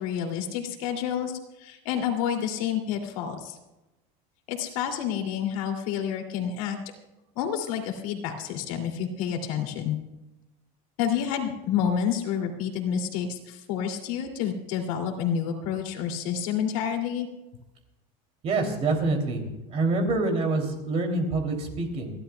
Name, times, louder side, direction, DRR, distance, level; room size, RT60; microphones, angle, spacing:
voice 1, 0.0-3.6 4.5-6.8 7.4-10.0 11.0-17.3, left 8 dB, 70° left, 3 dB, 2.7 m, -29 dB
voice 2, 18.4-19.4 19.7-22.1, right 3 dB, 35° right, 3 dB, 3.0 m, -26 dB
29.0 x 12.5 x 2.3 m, 0.99 s
supercardioid pair, 155°, 18 cm